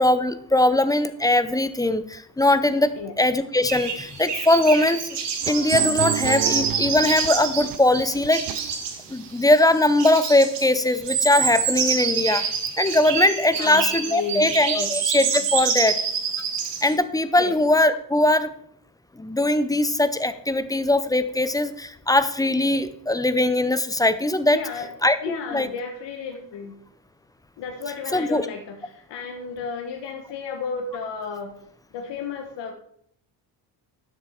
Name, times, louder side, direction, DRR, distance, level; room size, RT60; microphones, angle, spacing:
voice 1, 0.0-5.2 5.5-8.4 9.1-12.5 12.8-16.0 16.8-18.5 19.2-24.6 25.0-25.7 28.1-28.4, left 1 dB, 10° left, 12 dB, 0.5 m, -21 dB
sound 1, 3.7-16.9, right 6 dB, 70° right, 1.9 m, -26 dB
sound 2, 5.4-9.1, right 12 dB, 55° right, 0.5 m, -32 dB
voice 2, 13.5-14.9 17.4-17.5 24.5-24.9 25.2-26.8 27.6-31.5 31.9-32.7, left 5 dB, 70° left, 4 dB, 1.3 m, -33 dB
12.0 x 7.1 x 4.4 m, 0.66 s
cardioid pair, 150°, 43 cm